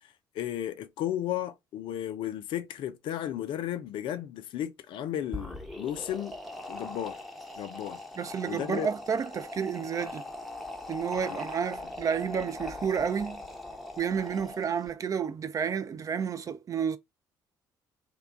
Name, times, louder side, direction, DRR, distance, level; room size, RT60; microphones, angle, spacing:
voice 1, 0.0-6.4 6.7-7.2 7.6-8.0 8.5-8.9 11.3-11.4, left 11 dB, 50° left, 0.4 m, -34 dB
sound 1, 5.2-14.9, left 2 dB, ahead, 0.7 m, -41 dB
voice 2, 8.2-10.2 10.9-13.4 14.0-17.0, right 7 dB, 30° right, 0.4 m, -31 dB
2.9 x 2.2 x 3.5 m
figure-of-eight pair, 50°, 11 cm